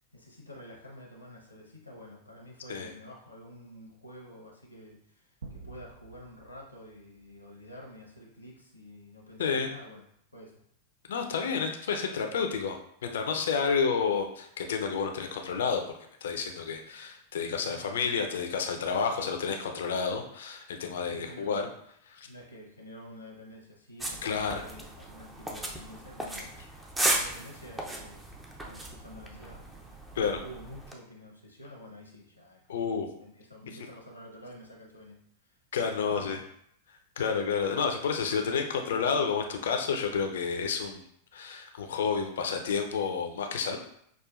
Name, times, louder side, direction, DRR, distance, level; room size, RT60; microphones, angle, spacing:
voice 1, 0.1-10.0 10.3-10.5 17.4-18.2 21.1-21.7 22.2-26.5 27.0-35.2 35.4-36.4, equal, 90° left, -1 dB, 0.9 m, -49 dB
sound 1, 5.4-7.9, right 3 dB, 65° right, 0.5 m, -49 dB
voice 2, 9.4-9.7 11.1-15.8 16.2-21.7 22.1-22.3 24.2-24.6 30.2-30.4 32.7-33.1 35.7-36.4 37.2-41.0 41.3-43.8, left 5 dB, 60° left, 4 dB, 0.5 m, -30 dB
sound 2, 24.0-30.9, right 1 dB, 10° right, 0.6 m, -35 dB
6.1 x 2.4 x 2.4 m, 0.70 s
figure-of-eight pair, 90°, 0 cm